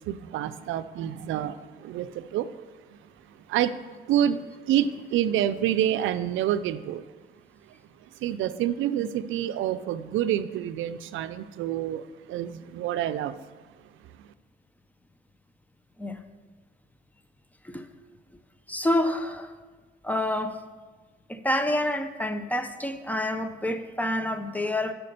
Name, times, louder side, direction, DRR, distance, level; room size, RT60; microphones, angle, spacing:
voice 1, 0.1-2.5 2.9-3.0 3.5-3.8 4.1-7.0 8.2-13.4, right 11 dB, 85° right, 12 dB, 0.5 m, -27 dB
voice 2, 18.7-19.5 20.0-20.6 21.3-24.9, left 1 dB, 10° left, 9 dB, 0.7 m, -28 dB
8.3 x 5.8 x 6.7 m, 1.3 s
cardioid pair, 90°, 20 cm